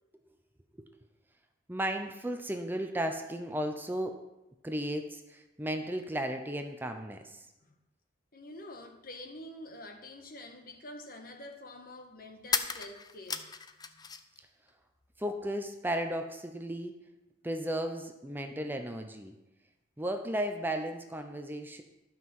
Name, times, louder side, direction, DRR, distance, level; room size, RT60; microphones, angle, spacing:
voice 1, 1.7-4.1 4.6-7.5 15.2-16.9 17.4-19.3 20.0-21.8, right 1 dB, 10° right, 5 dB, 0.7 m, -34 dB
voice 2, 8.3-13.5, left 1 dB, 55° left, 3 dB, 1.5 m, -47 dB
sound 1, 10.2-10.3 12.4-14.4 14.7-15.6, left 6 dB, 25° left, 0.5 m, -36 dB
12.0 x 5.7 x 6.1 m, 0.98 s
head